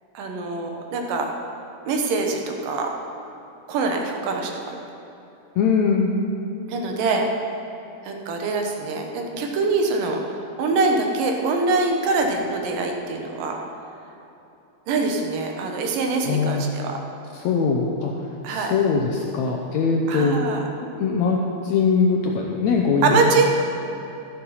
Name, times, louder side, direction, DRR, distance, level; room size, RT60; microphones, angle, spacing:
voice 1, 0.1-1.3 1.9-2.9 3.7-4.8 6.7-7.3 8.0-13.6 14.9-17.0 18.4-18.7 20.1-20.6 23.0-23.5, right 3 dB, 75° right, 2 dB, 2.8 m, -24 dB
voice 2, 5.6-6.1 16.2-16.7 17.4-18.1 18.5-20.4 20.8-21.4 21.6-23.2, left 5 dB, 75° left, 0 dB, 1.7 m, -21 dB
13.0 x 8.2 x 5.7 m, 2.9 s
omnidirectional pair, 4.0 m